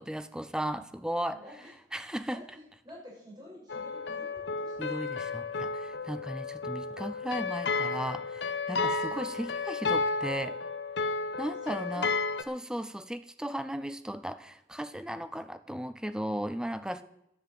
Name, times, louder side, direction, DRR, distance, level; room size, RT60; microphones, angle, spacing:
voice 1, 0.0-1.4 1.9-2.4 4.8-10.6 11.4-12.1 12.5-17.0, equal, 5° right, 12 dB, 0.6 m, -36 dB
voice 2, 1.3-1.7 2.3-4.9 8.8-9.0 11.6-12.1 17.0-17.1, equal, 25° right, -3 dB, 6.3 m, -50 dB
sound 1, 3.7-12.4, left 4 dB, 85° left, 0.9 m, -32 dB
10.5 x 10.0 x 7.7 m, 0.83 s
head